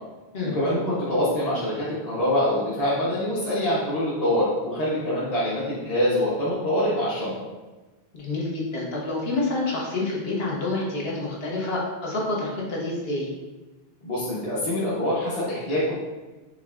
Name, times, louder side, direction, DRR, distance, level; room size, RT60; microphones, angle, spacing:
voice 1, 0.4-7.3 14.0-15.9, left 1 dB, 40° left, -9 dB, 1.0 m, -25 dB
voice 2, 8.1-13.3, left 2 dB, 70° left, -4 dB, 1.3 m, -28 dB
5.2 x 3.5 x 2.5 m, 1.2 s
omnidirectional pair, 1.1 m